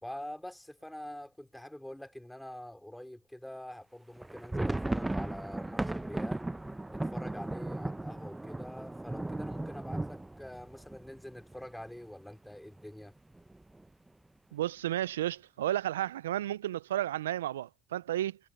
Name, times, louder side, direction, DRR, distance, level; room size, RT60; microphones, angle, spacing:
voice 1, 0.0-6.5 6.9-13.2, left 1 dB, 5° left, 3.1 m, -45 dB
sound 1, 4.2-11.9 12.2-12.3 12.6-12.8 13.3-13.8, right 2 dB, 10° right, 0.6 m, -36 dB
voice 2, 14.5-18.4, right 13 dB, 85° right, 0.3 m, -32 dB
hypercardioid pair, 65°, 0 cm